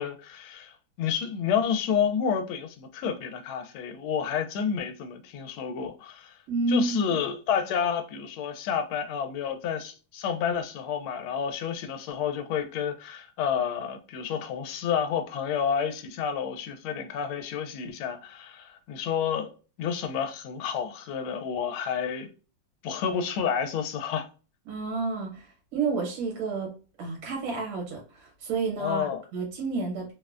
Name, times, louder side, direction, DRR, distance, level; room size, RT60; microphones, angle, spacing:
voice 1, 0.0-6.4 6.7-19.5 19.8-22.3 22.8-24.3 28.8-29.2, left 7 dB, 90° left, 1.4 m, -30 dB
voice 2, 6.5-7.1 24.7-26.7 27.0-30.1, right 4 dB, 75° right, 1.8 m, -30 dB
3.7 x 2.1 x 2.3 m
omnidirectional pair, 2.2 m